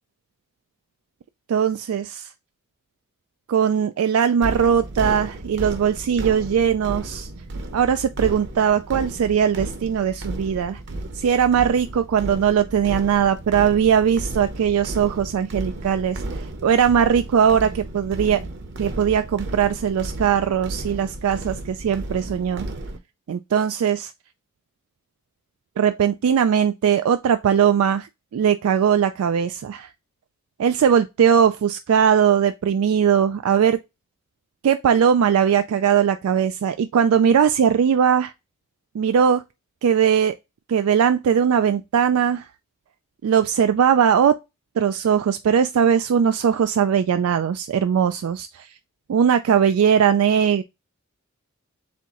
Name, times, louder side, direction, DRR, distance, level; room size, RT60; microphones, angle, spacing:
voice 1, 1.5-2.3 3.5-7.3 7.7-10.8 11.1-18.4 18.8-22.7 23.3-24.1 25.8-29.9 30.6-33.8 34.6-38.3 38.9-39.4 39.8-40.3 40.7-42.5 43.2-44.4 44.8-48.7 49.1-50.6, right 8 dB, 80° right, 0.3 m, -20 dB
sound 1, 4.4-23.0, right 2 dB, 50° right, 0.8 m, -33 dB
4.2 x 3.6 x 2.9 m
head